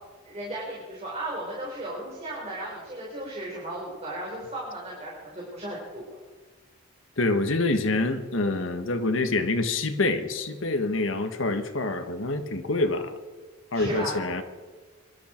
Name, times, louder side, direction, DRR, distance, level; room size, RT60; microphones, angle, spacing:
voice 1, 0.2-6.0 13.7-14.2, right 1 dB, 35° right, -4 dB, 4.2 m, -35 dB
voice 2, 7.2-13.2 13.7-14.4, left 2 dB, 70° left, 7 dB, 1.4 m, -26 dB
24.5 x 12.5 x 4.5 m, 1.4 s
head